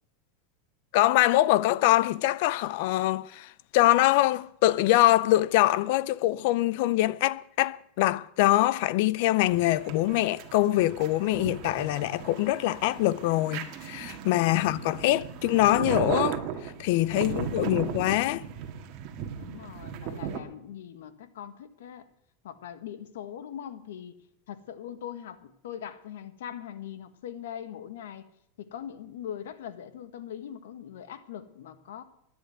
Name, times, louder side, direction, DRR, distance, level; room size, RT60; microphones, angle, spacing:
voice 1, 0.9-16.4 16.8-18.4, left 16 dB, 50° left, 0.4 m, -24 dB
sound 1, 9.4-20.4, right 9 dB, 35° right, 1.8 m, -36 dB
voice 2, 14.5-15.2 17.3-17.9 19.4-22.1 22.4-24.2 24.5-28.2 28.6-32.0, left 9 dB, 90° left, 1.4 m, -41 dB
11.5 x 10.5 x 9.2 m
supercardioid pair, 170°, 0 cm